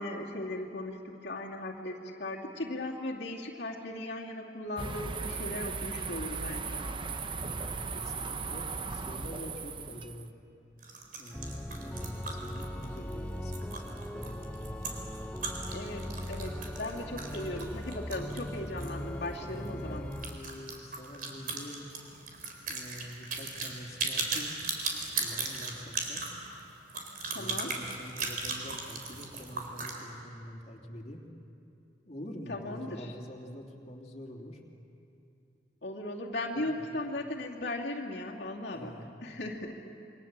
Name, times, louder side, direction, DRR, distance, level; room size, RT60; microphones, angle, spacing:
voice 1, 0.0-7.1 15.7-20.0 27.3-27.7 32.5-33.0 35.8-38.9 39.2-39.7, left 1 dB, 70° left, -4 dB, 2.5 m, -37 dB
sound 1, 4.8-10.3, right 4 dB, 30° right, 0.9 m, -37 dB
voice 2, 7.4-10.3 11.2-14.4 19.4-21.9 22.7-24.6 25.0-26.3 27.3-31.2 32.1-34.6 36.5-36.8 38.7-39.1, equal, 35° left, -2 dB, 3.0 m, -45 dB
sound 2, 10.8-19.0 19.3-19.4 19.6-19.7 20.1-30.0, right 4 dB, 50° right, 4.1 m, -37 dB
Organ, 11.3-20.5, left 1 dB, 5° left, 0.9 m, -39 dB
28.0 x 24.0 x 7.5 m, 2.6 s
head